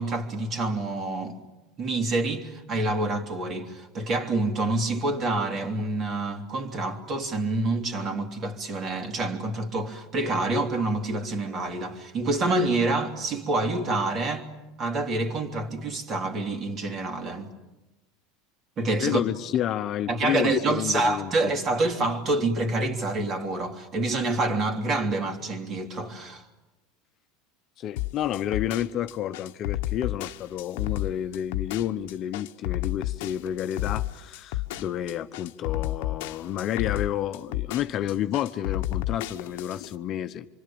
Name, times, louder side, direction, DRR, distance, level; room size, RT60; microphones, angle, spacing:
voice 1, 0.0-1.4 1.8-14.5 14.8-17.5 18.8-19.2 20.1-26.4, right 2 dB, 35° right, 3.1 m, -27 dB
voice 2, 19.0-21.5 27.8-40.5, left 11 dB, 45° left, 0.9 m, -30 dB
sound 1, 28.0-39.9, left 15 dB, 75° left, 0.9 m, -31 dB
26.5 x 24.5 x 8.8 m
supercardioid pair, 120°, 0 cm